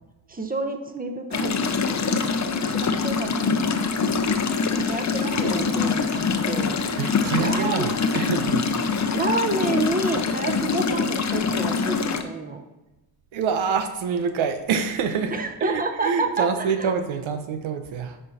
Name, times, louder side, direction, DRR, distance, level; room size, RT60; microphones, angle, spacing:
voice 1, 0.3-1.5 2.1-4.0 4.8-6.8 7.4-7.9 9.1-12.0 12.2-12.6 15.3-16.9, right 2 dB, 20° right, 6 dB, 0.9 m, -29 dB
sound 1, 1.3-12.2, left 5 dB, 40° left, 0.8 m, -24 dB
voice 2, 7.0-9.1 13.3-18.2, right 6 dB, 85° right, 7 dB, 0.9 m, -26 dB
10.0 x 4.5 x 4.2 m, 1.0 s
cardioid pair, 90°, 46 cm